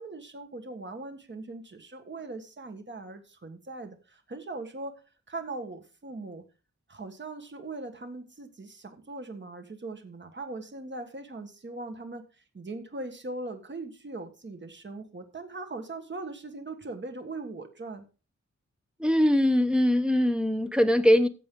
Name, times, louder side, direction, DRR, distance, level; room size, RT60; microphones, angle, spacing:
voice 1, 0.0-5.0 5.3-6.4 6.9-12.2 12.5-18.0, right 2 dB, 40° right, 1.6 m, -40 dB
voice 2, 19.0-21.3, left 1 dB, 5° right, 1.0 m, -22 dB
15.0 x 7.6 x 3.8 m
wide cardioid pair, 115°, 29 cm